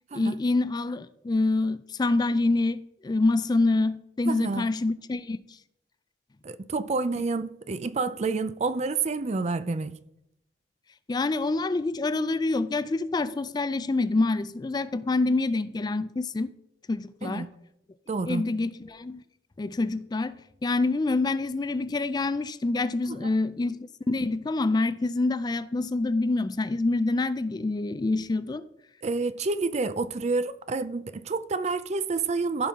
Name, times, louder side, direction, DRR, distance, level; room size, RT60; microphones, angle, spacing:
voice 1, 0.1-5.4 11.1-16.5 16.9-17.5 18.3-19.2 19.6-28.6, left 2 dB, 25° left, 0.3 m, -26 dB
voice 2, 4.3-4.7 6.4-9.9 17.2-17.5 18.1-18.6 23.1-23.3 29.0-32.7, right 3 dB, 40° right, 0.4 m, -29 dB
14.5 x 5.5 x 3.6 m
head